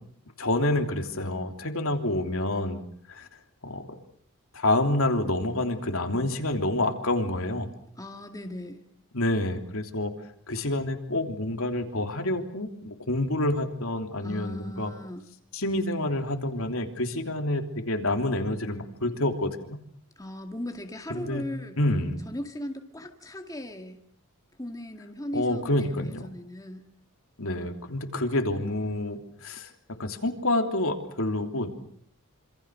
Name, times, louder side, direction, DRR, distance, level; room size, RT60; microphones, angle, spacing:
voice 1, 0.4-2.8 3.1-3.3 3.6-3.9 4.5-7.7 9.1-10.1 10.5-14.9 15.5-19.8 21.1-21.4 21.8-22.2 25.3-26.3 27.4-29.7 30.0-31.7, left 1 dB, 65° left, 5 dB, 3.2 m, -28 dB
voice 2, 8.0-8.9 14.2-15.3 20.2-21.8 22.3-24.0 24.6-26.9, left 1 dB, 15° left, 5 dB, 2.1 m, -38 dB
27.5 x 27.0 x 6.4 m, 0.63 s
head